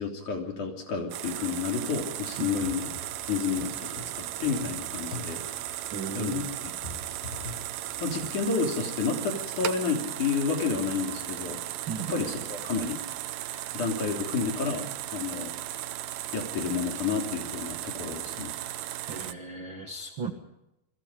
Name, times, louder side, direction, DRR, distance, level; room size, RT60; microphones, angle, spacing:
voice 1, 0.0-2.9 3.3-5.4 6.1-6.4 8.0-11.6 12.1-13.0 13.7-14.8 15.1-15.5 16.3-18.5, left 5 dB, 55° left, 3 dB, 4.7 m, -30 dB
sound 1, 1.1-19.3, right 13 dB, 75° right, 2.4 m, -36 dB
sound 2, 2.3-8.3, left 3 dB, 90° left, 7.9 m, -44 dB
voice 2, 5.9-6.5 11.9-12.1 19.0-20.3, right 5 dB, 45° right, 5 dB, 1.6 m, -35 dB
28.5 x 21.5 x 5.0 m, 0.88 s
omnidirectional pair, 4.5 m